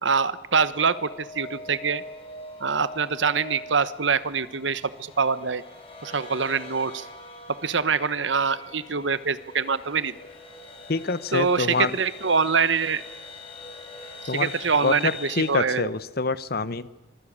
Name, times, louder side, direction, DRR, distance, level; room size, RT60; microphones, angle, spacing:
voice 1, 0.0-2.0 2.6-5.6 6.0-7.1 7.5-10.1 11.3-13.0 14.3-15.9, right 5 dB, 70° right, 15 dB, 1.1 m, -24 dB
sound 1, 0.6-15.5, left 2 dB, 30° left, 6.0 m, -42 dB
voice 2, 10.9-11.9 14.3-14.5 14.8-16.9, left 3 dB, 50° left, 17 dB, 0.9 m, -26 dB
26.0 x 19.0 x 8.7 m, 1.1 s
head